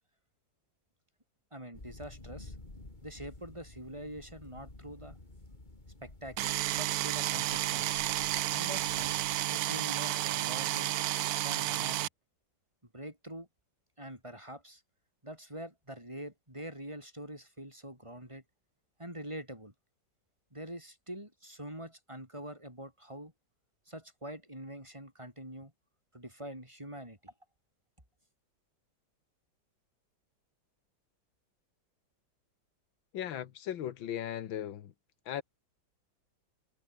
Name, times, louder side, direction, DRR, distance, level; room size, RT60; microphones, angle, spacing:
voice 1, 1.5-2.6 3.0-5.2 6.0-8.1 8.5-10.9 11.4-12.1 12.9-13.5 14.0-14.8 15.2-18.4 19.0-19.7 20.5-23.3 23.9-25.7 26.1-27.3, right 1 dB, 15° right, 7.4 m, -45 dB
sound 1, 1.7-9.4, left 2 dB, 25° left, 3.4 m, -52 dB
sound 2, 6.4-12.1, right 15 dB, 70° right, 0.9 m, -31 dB
voice 2, 33.1-34.9 35.3-35.4, left 10 dB, 85° left, 1.9 m, -37 dB
omnidirectional pair, 2.1 m